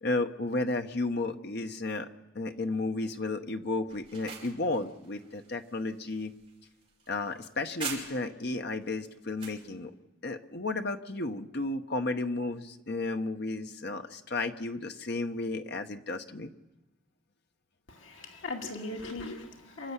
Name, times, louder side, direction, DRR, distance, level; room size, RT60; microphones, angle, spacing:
voice 1, 0.0-2.1 2.3-6.3 7.1-9.9 10.2-16.5, left 2 dB, 55° left, 7 dB, 1.1 m, -33 dB
sound 1, 3.9-8.5 8.9-9.6, right 5 dB, 25° right, 5.0 m, -43 dB
voice 2, 17.9-19.9, left 2 dB, 75° left, 1 dB, 2.3 m, -39 dB
28.0 x 11.5 x 8.3 m, 1.1 s
head